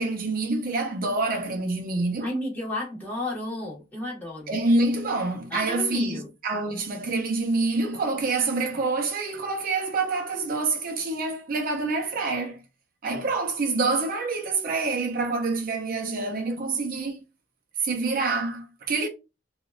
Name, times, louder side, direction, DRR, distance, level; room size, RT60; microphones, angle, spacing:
voice 1, 0.0-2.3 4.5-12.6 13.0-17.2 17.8-19.1, right 3 dB, 50° right, 0.5 m, -26 dB
voice 2, 2.2-4.6 5.5-6.3, left 1 dB, 10° left, 1.2 m, -32 dB
4.0 x 2.2 x 2.3 m
head